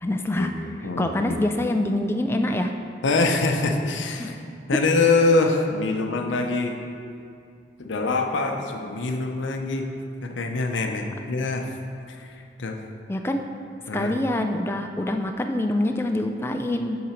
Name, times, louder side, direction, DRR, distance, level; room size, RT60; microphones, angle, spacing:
voice 1, 0.0-0.5 1.0-2.7 4.2-4.3 4.7-4.8 13.1-13.4 13.9-17.0, left 1 dB, 10° left, 5 dB, 0.3 m, -25 dB
voice 2, 0.8-1.4 3.0-4.3 4.7-6.8 7.8-9.9 10.2-11.8 12.1-12.3 12.6-12.8 13.9-14.1, left 3 dB, 80° left, 4 dB, 0.6 m, -24 dB
8.5 x 3.8 x 5.7 m, 2.4 s
head